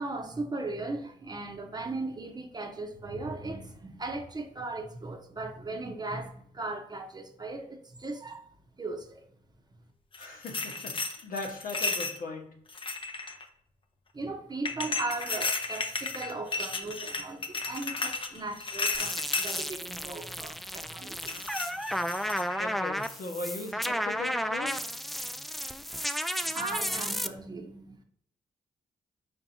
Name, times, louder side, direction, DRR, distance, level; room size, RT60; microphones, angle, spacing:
voice 1, 0.0-8.5 8.8-9.3 14.1-21.4 26.5-28.0, right 2 dB, 25° right, 0.8 m, -37 dB
sound 1, 10.1-12.2 12.7-13.4 14.6-19.6 21.2-22.7 23.0-23.3, left 3 dB, 35° left, 0.7 m, -34 dB
voice 2, 10.2-11.0 11.2-12.5 12.8-13.0 21.2-25.3, left 3 dB, 65° left, 1.1 m, -40 dB
sound 2, 18.9-27.3, equal, ahead, 0.3 m, -33 dB
4.5 x 4.2 x 2.7 m
cardioid pair, 65°, 15 cm